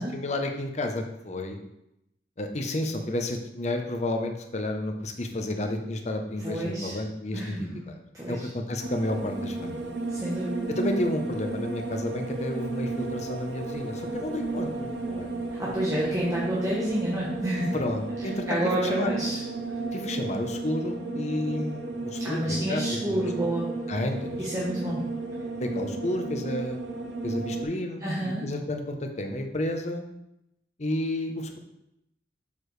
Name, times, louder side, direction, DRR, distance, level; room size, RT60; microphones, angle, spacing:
voice 1, 0.0-1.6 2.4-8.0 8.2-9.8 10.7-15.3 17.7-19.2 19.9-23.2 23.9-24.7 25.6-26.8 27.2-30.0 30.8-31.6, left 1 dB, 40° left, 4 dB, 0.7 m, -31 dB
voice 2, 6.4-7.0 7.3-7.6 8.1-8.5 10.1-10.7 15.6-17.8 18.5-19.4 22.2-23.9 24.4-25.2 28.0-28.4, right 1 dB, 20° right, -7 dB, 1.0 m, -29 dB
sound 1, 8.8-27.6, right 3 dB, 80° right, 0.8 m, -33 dB
6.8 x 4.7 x 3.2 m, 0.83 s
head